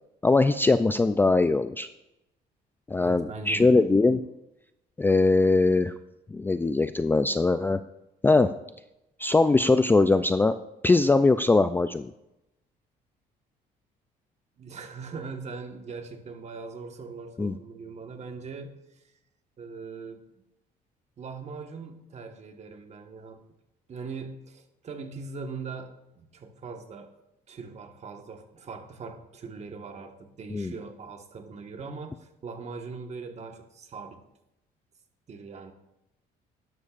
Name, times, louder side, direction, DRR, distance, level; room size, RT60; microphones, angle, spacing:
voice 1, 0.2-1.9 2.9-4.2 5.0-5.9 6.3-7.8 8.2-8.5 9.2-10.5 10.8-12.1 17.4-17.6 30.5-30.7, left 3 dB, 10° left, 11 dB, 0.3 m, -21 dB
voice 2, 3.0-3.7 14.6-19.0 19.6-20.2 21.2-23.4 23.9-27.1 27.5-34.2 35.3-35.7, right 4 dB, 40° right, 5 dB, 1.4 m, -41 dB
12.5 x 11.0 x 2.5 m, 0.88 s
cardioid pair, 110°, 17 cm